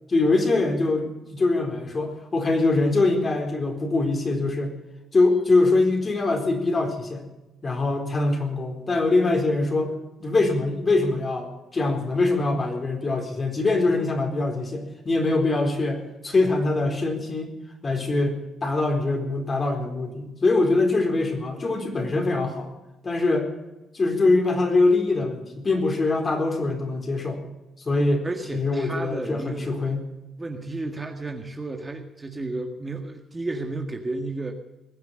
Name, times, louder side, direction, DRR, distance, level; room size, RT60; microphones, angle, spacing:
voice 1, 0.1-4.7 5.1-7.3 7.6-9.9 10.2-17.5 17.8-22.7 23.0-23.5 23.9-27.4 27.8-28.3 28.5-30.0, left 2 dB, 35° left, 4 dB, 4.2 m, -23 dB
voice 2, 28.2-29.7 30.4-34.5, right 2 dB, 20° right, 4 dB, 1.8 m, -32 dB
21.0 x 7.9 x 8.8 m, 0.99 s
cardioid pair, 90°, 0 cm